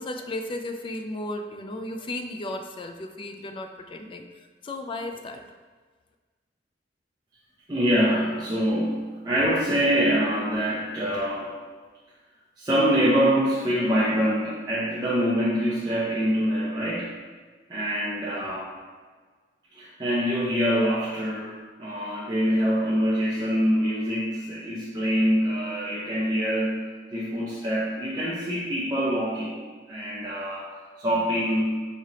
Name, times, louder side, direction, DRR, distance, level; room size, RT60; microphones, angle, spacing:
voice 1, 0.0-4.3 4.6-5.5, left 1 dB, 30° left, 5 dB, 0.3 m, -34 dB
voice 2, 7.7-11.6 12.6-17.1 17.7-18.7 19.7-26.8 27.1-31.8, equal, 25° right, -8 dB, 0.6 m, -25 dB
4.8 x 3.2 x 2.8 m, 1.4 s
head